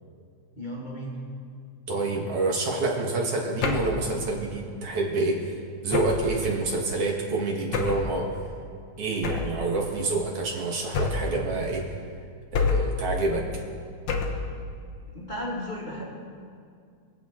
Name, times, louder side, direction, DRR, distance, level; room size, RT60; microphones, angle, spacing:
voice 1, 0.6-1.2 15.0-16.0, equal, 20° left, -4 dB, 1.7 m, -34 dB
voice 2, 1.9-5.5 5.8-8.3 9.0-11.8 12.5-13.4, right 3 dB, 55° right, -1 dB, 2.3 m, -27 dB
sound 1, 3.6-4.0 5.9-6.4 7.7-8.1 9.2-9.6 10.9-11.4 12.5-13.0 14.1-14.5, left 4 dB, 65° left, 1.1 m, -27 dB
24.5 x 8.3 x 3.7 m, 2.3 s
omnidirectional pair, 3.4 m